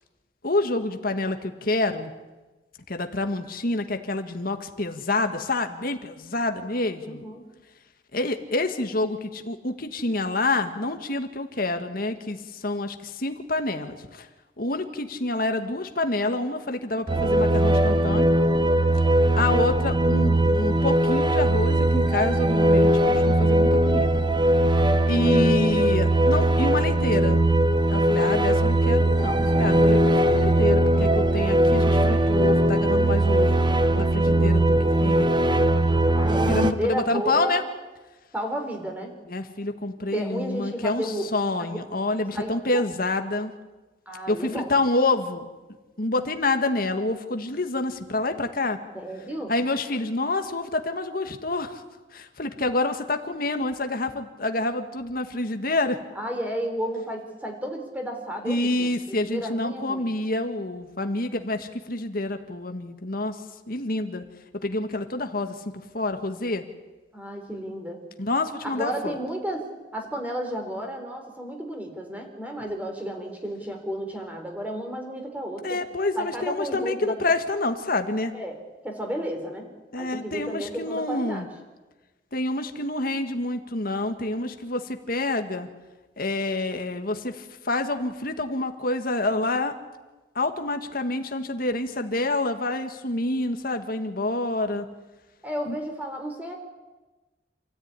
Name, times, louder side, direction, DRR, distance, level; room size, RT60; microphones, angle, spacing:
voice 1, 0.4-2.1 2.9-7.2 8.1-14.3 14.6-18.4 19.4-24.2 25.1-27.4 27.9-33.6 33.9-35.3 36.5-37.6 39.3-43.5 44.3-45.5 46.0-48.8 49.5-51.8 52.1-56.0 58.5-63.4 63.7-64.2 64.6-65.6 65.9-66.6 68.2-69.1 75.6-78.3 79.9-81.5 82.3-85.7 86.2-89.8 90.4-94.9 95.7-95.8, left 2 dB, 55° left, 6 dB, 1.9 m, -27 dB
voice 2, 7.0-7.4 36.2-37.6 38.3-39.1 40.1-41.2 41.6-41.8 42.1-42.8 44.1-44.7 48.9-49.5 56.2-60.1 67.1-68.0 68.6-75.8 76.1-77.2 78.3-78.5 78.8-79.7 80.0-81.5 95.4-96.6, equal, 10° right, 3 dB, 4.0 m, -32 dB
sound 1, 17.1-36.7, right 1 dB, 25° right, 0.9 m, -20 dB
28.0 x 14.0 x 9.9 m, 1.2 s
head